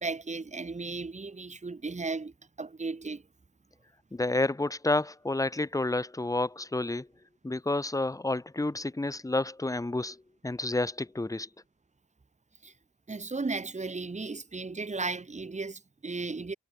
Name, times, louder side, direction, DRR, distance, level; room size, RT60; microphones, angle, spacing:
voice 1, 0.0-3.2 12.6-12.7 13.1-16.5, right 3 dB, 25° right, 1.0 m, -35 dB
voice 2, 4.1-7.1 7.4-10.2 10.4-11.5, left 2 dB, 10° left, 0.7 m, -30 dB
cardioid pair, 55°, 31 cm